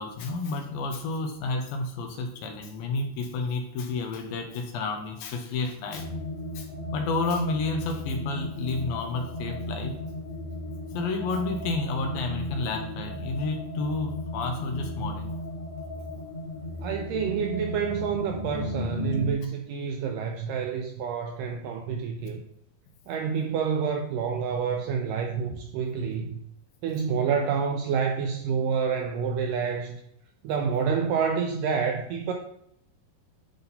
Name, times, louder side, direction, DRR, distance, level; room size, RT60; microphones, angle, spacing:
voice 1, 0.0-6.1 6.6-6.7 6.9-10.0 10.9-15.3, left 3 dB, 75° left, 4 dB, 2.5 m, -30 dB
sound 1, 5.9-19.3, left 1 dB, 30° right, 0.7 m, -35 dB
voice 2, 16.8-22.4 23.1-26.4 26.8-30.0 30.4-32.3, right 6 dB, 90° right, 3 dB, 1.9 m, -28 dB
10.5 x 3.9 x 4.1 m, 0.75 s
omnidirectional pair, 4.5 m